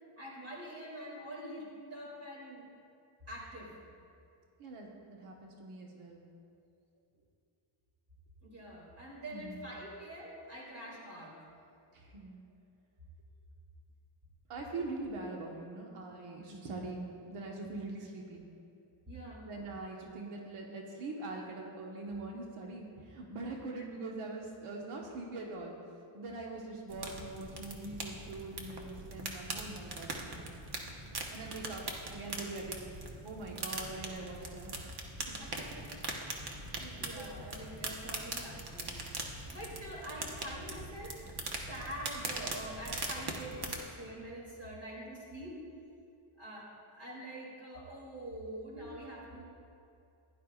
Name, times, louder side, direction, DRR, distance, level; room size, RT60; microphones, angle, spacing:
voice 1, 0.2-2.7 3.3-3.7 8.4-11.4 19.1-19.5 28.2-28.3 35.4-36.0 36.3-39.0 39.5-41.2 41.5-45.6 46.4-49.4, right 1 dB, 30° right, -4 dB, 2.9 m, -45 dB
voice 2, 4.6-6.2 9.3-9.6 11.9-12.4 14.5-17.0 17.3-18.4 19.4-25.8 26.1-30.4 31.3-31.8 32.1-32.8 33.2-35.0 35.3-35.4 36.8-37.1, right 2 dB, 90° right, -1 dB, 1.4 m, -43 dB
sound 1, 26.9-43.8, right 2 dB, 50° right, 1.2 m, -41 dB
15.5 x 11.0 x 2.5 m, 2.5 s
wide cardioid pair, 165°, 50 cm